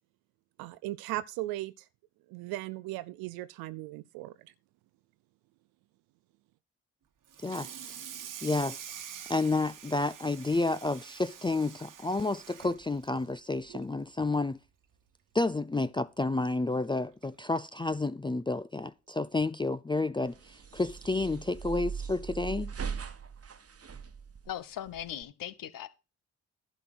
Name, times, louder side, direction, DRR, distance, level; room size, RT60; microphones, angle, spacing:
voice 1, 0.6-1.9 2.3-4.5, right 16 dB, 80° right, 0.5 m, -37 dB
Water tap faucet / Sink (filling or washing), 7.3-13.9 14.3-14.6 14.9-15.0 15.4-15.5 16.7-16.8 17.2-17.4, right 8 dB, 60° right, 1.4 m, -46 dB
voice 2, 7.4-7.9 8.4-8.9 9.3-14.6 15.3-22.7, left 2 dB, 15° left, 0.5 m, -30 dB
sound 1, 20.2-25.2, right 6 dB, 40° right, 1.2 m, -40 dB
voice 3, 24.5-25.9, left 11 dB, 65° left, 1.1 m, -39 dB
11.0 x 4.3 x 7.9 m
hypercardioid pair, 40°, 36 cm